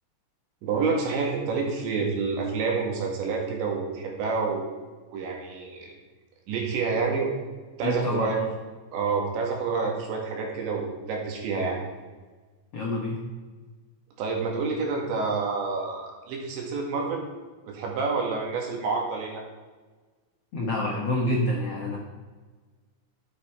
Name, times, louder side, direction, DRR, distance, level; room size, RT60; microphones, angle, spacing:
voice 1, 0.6-4.7 5.1-6.0 6.5-7.3 7.8-8.4 8.9-11.8 14.2-17.2 17.7-19.4, right 4 dB, 80° right, 0 dB, 4.3 m, -28 dB
voice 2, 7.8-8.4 12.7-13.2 20.5-22.0, left 1 dB, 70° left, -2 dB, 1.4 m, -27 dB
12.5 x 8.8 x 4.6 m, 1.4 s
omnidirectional pair, 5.1 m